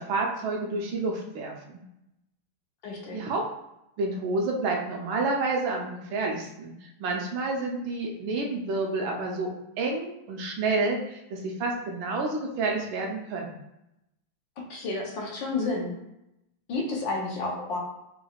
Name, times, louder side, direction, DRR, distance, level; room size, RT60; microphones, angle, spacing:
voice 1, 0.0-1.8 3.1-3.4 4.0-9.5 9.8-13.6, right 3 dB, 75° right, 1 dB, 1.4 m, -29 dB
voice 2, 2.8-3.2 14.7-15.9 16.7-17.8, left 3 dB, 70° left, -1 dB, 1.4 m, -30 dB
4.3 x 3.3 x 2.3 m, 0.87 s
omnidirectional pair, 2.2 m